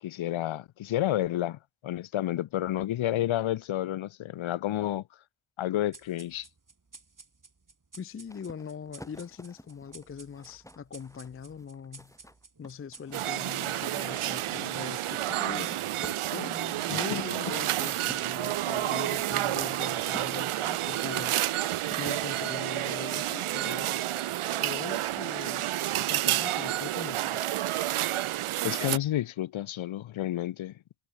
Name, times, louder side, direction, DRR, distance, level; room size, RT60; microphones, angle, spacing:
voice 1, 0.0-5.0 5.6-6.5 16.4-17.5 28.6-30.7, left 13 dB, 75° left, 0.6 m, -31 dB
sound 1, 5.9-13.7, right 3 dB, 40° right, 6.9 m, -54 dB
voice 2, 8.0-12.1 12.6-15.8 16.3-16.6 16.8-21.4 22.0-24.0 24.6-25.7 26.1-27.4, left 6 dB, 30° left, 0.4 m, -41 dB
sound 2, 8.3-13.6 14.5-20.8 21.9-22.0, left 1 dB, 5° left, 3.0 m, -51 dB
sound 3, 13.1-29.0, right 14 dB, 85° right, 0.6 m, -30 dB
wide cardioid pair, 90°, 48 cm